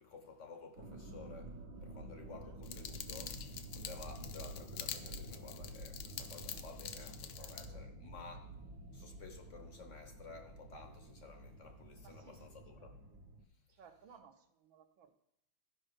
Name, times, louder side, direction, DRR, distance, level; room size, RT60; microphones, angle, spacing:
voice 1, 0.0-8.6 8.9-13.0, left 4 dB, 50° left, 0.9 m, -54 dB
sound 1, 0.8-13.4, right 1 dB, 55° right, 1.4 m, -50 dB
sound 2, 2.6-7.7, left 9 dB, 75° left, 1.4 m, -47 dB
voice 2, 7.3-7.8 12.0-12.4 12.8-12.9 13.7-15.1, right 6 dB, 70° right, 1.5 m, -61 dB
13.0 x 5.5 x 5.1 m
omnidirectional pair, 2.3 m